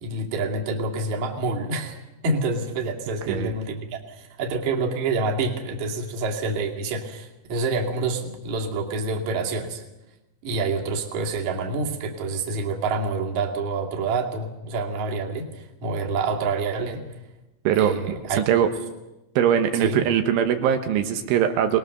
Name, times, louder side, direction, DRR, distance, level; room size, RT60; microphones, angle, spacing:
voice 1, 0.0-2.0 2.2-9.8 10.4-17.0 17.7-18.4 19.7-20.0, right 3 dB, 45° right, 1 dB, 3.2 m, -27 dB
voice 2, 17.7-18.7 19.4-21.8, right 9 dB, 80° right, 6 dB, 3.6 m, -21 dB
25.0 x 20.0 x 6.8 m, 0.99 s
omnidirectional pair, 5.7 m